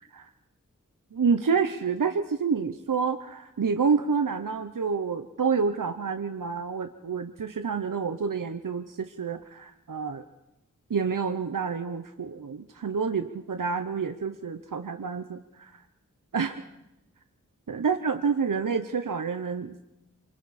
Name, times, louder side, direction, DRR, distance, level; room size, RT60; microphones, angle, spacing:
voice 1, 1.1-10.2 10.9-15.8 16.3-16.6 17.7-19.8, right 5 dB, 80° right, 8 dB, 0.8 m, -28 dB
28.0 x 24.5 x 4.3 m, 0.89 s
wide cardioid pair, 50°, 32 cm